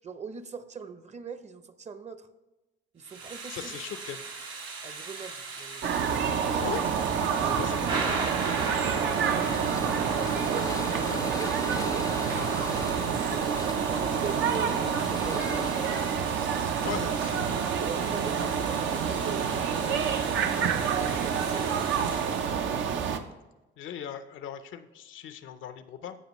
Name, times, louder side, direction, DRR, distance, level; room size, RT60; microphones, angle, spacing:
voice 1, 0.0-2.3 2.9-3.8 4.8-6.4 7.3-7.7 8.5-10.0 10.3-10.7 11.1-13.1 13.9-17.4 17.6-19.9 20.2-20.6 20.9-22.0, right 5 dB, 35° right, 11 dB, 0.7 m, -42 dB
Thunder / Rain, 3.0-22.5, right 4 dB, 90° right, 2.1 m, -38 dB
voice 2, 3.5-4.2 6.6-6.9 7.4-8.0 11.1-11.3 16.8-17.4 19.8-20.1 23.8-26.2, left 9 dB, 80° left, 11 dB, 0.6 m, -39 dB
sound 1, 5.8-23.2, right 7 dB, 75° right, 0.7 m, -28 dB
sound 2, 9.4-16.1, left 4 dB, 15° left, 0.4 m, -40 dB
15.0 x 5.1 x 3.0 m, 1.0 s
cardioid pair, 90°, 20 cm